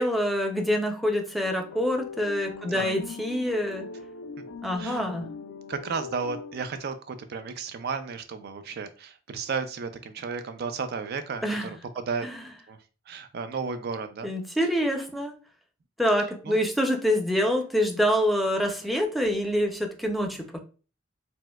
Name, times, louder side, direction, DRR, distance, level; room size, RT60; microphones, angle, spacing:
voice 1, 0.0-3.9 4.6-5.3 11.4-11.7 14.2-15.4 16.0-20.6, equal, ahead, 0.5 m, -26 dB
sound 1, 1.4-6.8, left 5 dB, 70° left, 0.3 m, -41 dB
voice 2, 4.8-5.2 5.7-12.3 12.7-12.8 13.1-14.3 16.4-16.6, right 5 dB, 55° right, 0.4 m, -33 dB
4.3 x 2.2 x 2.2 m
head